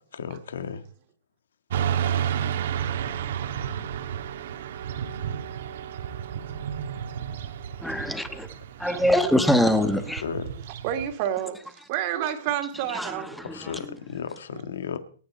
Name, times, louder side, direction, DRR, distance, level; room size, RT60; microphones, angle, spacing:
voice 1, 0.1-0.8 9.9-10.4 13.4-15.0, left 7 dB, 80° left, 1.7 m, -34 dB
Motorcycle / Traffic noise roadway noise, 1.7-11.1, right 9 dB, 60° right, 1.8 m, -31 dB
voice 2, 7.8-8.5 8.8-10.2 12.9-14.0, left 1 dB, ahead, 1.2 m, -24 dB
voice 3, 8.9-9.3 10.8-13.5, right 11 dB, 35° right, 2.4 m, -30 dB
27.5 x 9.7 x 4.3 m
hypercardioid pair, 160°, 0 cm